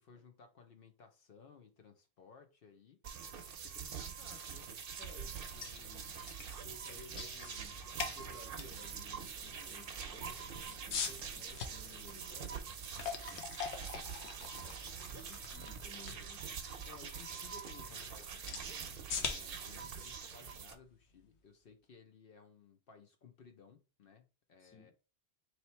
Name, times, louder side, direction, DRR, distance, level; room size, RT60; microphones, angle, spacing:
voice 1, 0.0-3.0 3.5-4.7 16.8-24.9, left 5 dB, 65° left, 0.8 m, -59 dB
sound 1, 3.0-20.7, right 7 dB, 60° right, 0.8 m, -45 dB
voice 2, 5.0-12.6 14.6-16.5 24.6-24.9, left 2 dB, 15° left, 0.6 m, -57 dB
sound 2, 5.4-21.3, left 6 dB, 85° left, 1.0 m, -46 dB
sound 3, 7.5-15.8, right 2 dB, 15° right, 0.8 m, -65 dB
3.2 x 2.8 x 4.2 m
omnidirectional pair, 1.1 m